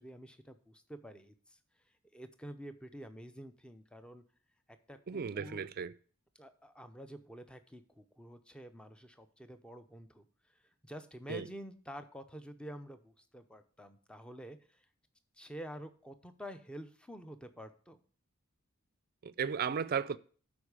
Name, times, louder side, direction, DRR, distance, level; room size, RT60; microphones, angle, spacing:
voice 1, 0.0-1.6 2.1-4.2 4.7-5.7 6.4-10.3 10.8-14.8 15.4-18.0, equal, 5° left, 0.6 m, -49 dB
voice 2, 5.1-5.9 11.3-11.5 19.2-20.2, right 6 dB, 45° right, 0.4 m, -35 dB
12.0 x 4.6 x 4.8 m
head